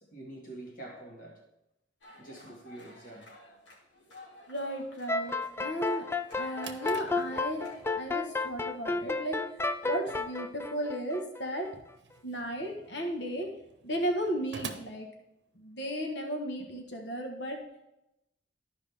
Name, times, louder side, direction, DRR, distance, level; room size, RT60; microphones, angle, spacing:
voice 1, 0.0-1.5 2.2-3.3, right 2 dB, 45° left, 1.9 m, -46 dB
sound 1, 2.0-7.8, left 1 dB, 85° left, 2.6 m, -53 dB
voice 2, 4.5-6.0 6.4-7.7 7.9-9.4 9.8-11.7 12.2-13.5 13.8-15.1 15.5-17.6, equal, 70° left, 1.4 m, -34 dB
sound 2, 5.1-11.7, left 3 dB, 15° left, 0.3 m, -32 dB
Drawer open or close, 6.2-16.0, right 5 dB, 70° right, 0.8 m, -49 dB
13.0 x 5.2 x 3.5 m
head